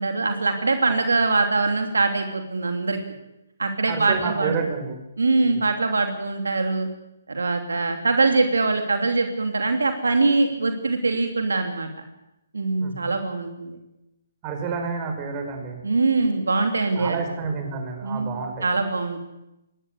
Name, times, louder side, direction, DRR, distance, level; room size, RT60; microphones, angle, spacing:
voice 1, 0.0-3.0 3.6-4.6 5.2-6.9 7.3-11.9 12.5-13.8 15.8-17.2 18.0-19.2, right 3 dB, 85° right, 6 dB, 2.8 m, -23 dB
voice 2, 3.9-5.0 12.8-13.1 14.4-15.8 17.0-18.7, right 5 dB, 30° right, 4 dB, 5.8 m, -29 dB
21.5 x 17.0 x 8.5 m, 0.90 s
hypercardioid pair, 145°, 0 cm